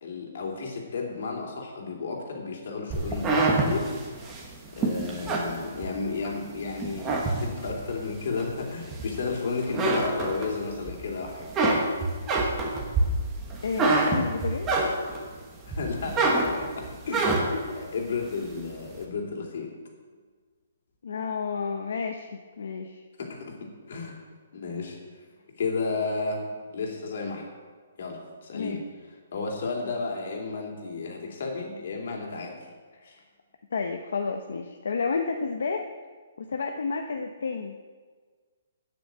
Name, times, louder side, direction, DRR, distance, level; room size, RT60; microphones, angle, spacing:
voice 1, 0.0-3.8 4.1-4.4 4.7-11.6 15.7-17.4 17.8-19.7 23.2-23.5 23.9-24.1 24.5-25.0 25.6-27.4 28.0-28.8 29.3-32.5 33.0-33.2, left 4 dB, 50° left, 0 dB, 2.9 m, -33 dB
sound 1, 2.9-6.3 6.7-7.8 8.4-9.4 9.6-10.9 11.2-15.3 15.7-17.7, right 3 dB, 10° right, 1.3 m, -26 dB
voice 2, 13.6-14.9 17.5-17.8 21.0-23.0 28.5-28.8 32.9-33.1 33.7-35.9 36.4-37.8, left 5 dB, 70° left, 4 dB, 0.9 m, -31 dB
9.6 x 8.4 x 7.6 m, 1.5 s
hypercardioid pair, 180°, 0 cm